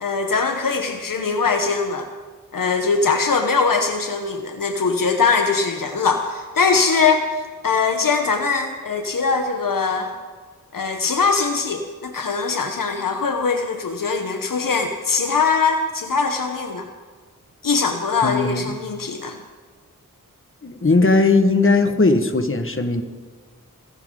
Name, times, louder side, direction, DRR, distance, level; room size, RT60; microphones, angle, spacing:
voice 1, 0.0-2.1 2.5-7.2 7.6-10.1 10.7-16.9 17.6-19.4, left 4 dB, 70° left, 5 dB, 1.1 m, -21 dB
voice 2, 18.2-18.7 20.6-23.0, left 3 dB, 40° left, 7 dB, 1.5 m, -18 dB
29.0 x 10.5 x 3.9 m, 1.5 s
wide cardioid pair, 60°, 34 cm